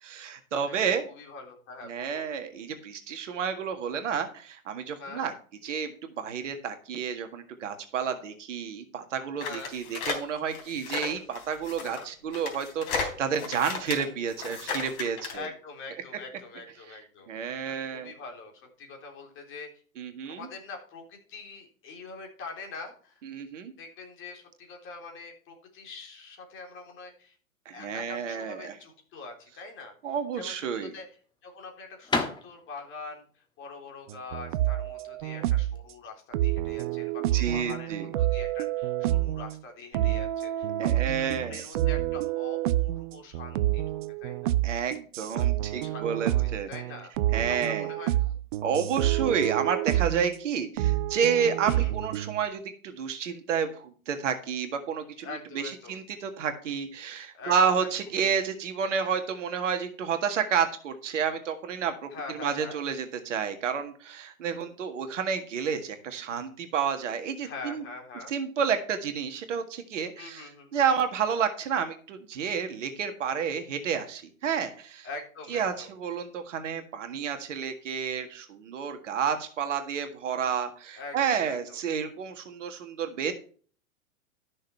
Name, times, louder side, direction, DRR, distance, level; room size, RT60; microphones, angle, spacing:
voice 1, 0.0-1.1 1.8-5.3 5.6-15.5 16.9-17.0 17.3-18.1 20.0-20.5 23.2-23.7 27.7-28.8 30.0-30.9 37.3-38.1 40.8-41.6 44.6-46.7 47.3-47.9 48.6-67.8 68.3-75.1 75.5-83.3, right 7 dB, 60° right, 7 dB, 1.8 m, -30 dB
voice 2, 0.7-2.3 5.0-5.3 9.4-9.7 11.8-12.1 15.3-17.3 17.7-19.7 20.3-23.2 23.8-27.4 27.7-31.1 31.4-44.5 45.2-45.5 45.7-47.1 47.6-48.4 51.7-51.9 55.2-56.0 57.3-57.9 62.1-62.8 67.4-68.3 70.2-70.9 75.0-75.9 81.0-81.8, left 4 dB, 30° left, 2 dB, 3.6 m, -44 dB
sound 1, 9.4-15.4, left 5 dB, 45° left, 3.4 m, -34 dB
sound 2, 30.2-35.8, left 3 dB, 10° left, 1.3 m, -35 dB
sound 3, 34.1-35.8 36.3-39.6 39.9-50.4 50.8-52.4, right 14 dB, 40° right, 0.5 m, -28 dB
13.0 x 6.5 x 4.5 m, 0.43 s
figure-of-eight pair, 110°, 41 cm